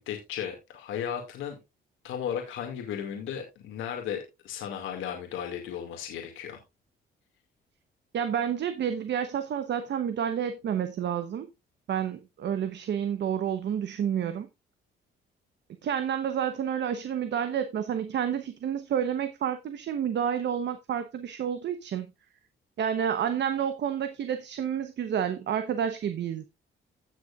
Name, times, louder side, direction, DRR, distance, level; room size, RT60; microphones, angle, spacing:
voice 1, 0.0-1.6 2.0-6.6, left 9 dB, 90° left, 2.2 m, -35 dB
voice 2, 8.1-11.5 11.9-14.5 15.8-22.1 22.8-26.4, right 8 dB, 60° right, 1.0 m, -29 dB
16.0 x 6.5 x 2.5 m
cardioid pair, 90°, 20 cm